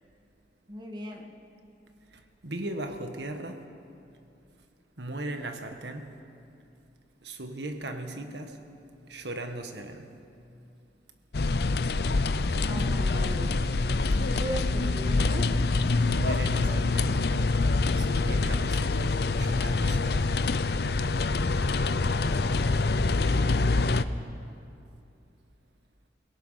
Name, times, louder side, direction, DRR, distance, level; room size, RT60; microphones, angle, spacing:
voice 1, 0.7-1.3 12.6-13.6 14.2-15.5 16.3-16.9 23.2-23.6, right 1 dB, 25° right, 2.0 m, -39 dB
voice 2, 2.1-3.7 5.0-6.1 7.2-8.6 9.1-10.1 16.0-17.2 17.9-20.4, right 1 dB, 75° right, 1.7 m, -38 dB
sound 1, 11.3-24.0, left 3 dB, 60° left, 0.6 m, -25 dB
28.5 x 17.5 x 5.9 m
head